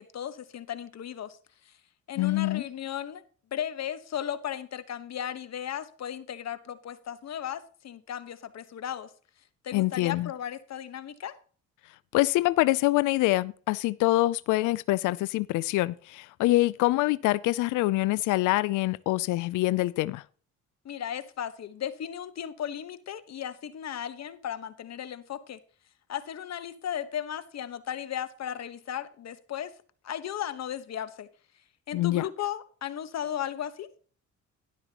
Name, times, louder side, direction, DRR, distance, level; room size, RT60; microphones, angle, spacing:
voice 1, 0.0-1.4 1.6-1.7 2.1-3.2 3.5-9.1 9.6-11.4 20.8-25.6 26.1-29.7 30.0-31.3 31.9-33.9, left 10 dB, 60° left, 1.2 m, -36 dB
voice 2, 2.2-2.6 9.7-10.3 12.1-20.2 31.9-32.3, left 18 dB, 90° left, 0.5 m, -25 dB
12.0 x 11.5 x 2.9 m
cardioid pair, 90°, 30 cm